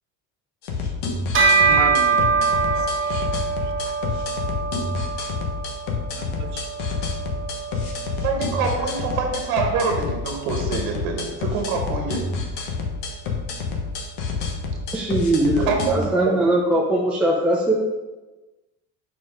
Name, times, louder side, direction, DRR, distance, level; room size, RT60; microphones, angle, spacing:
sound 1, 0.6-16.1, left 4 dB, 80° left, 1.2 m, -28 dB
Bell, 1.3-11.0, right 5 dB, 30° right, 1.1 m, -25 dB
voice 1, 1.7-3.3 3.9-4.0 6.1-6.7, right 7 dB, 50° right, 8 dB, 0.6 m, -33 dB
voice 2, 8.2-12.2 15.6-16.4, right 5 dB, 85° right, 2 dB, 1.1 m, -25 dB
voice 3, 14.9-17.7, right 1 dB, 5° right, -3 dB, 0.5 m, -20 dB
4.5 x 4.5 x 4.9 m, 1.1 s
cardioid pair, 150°, 39 cm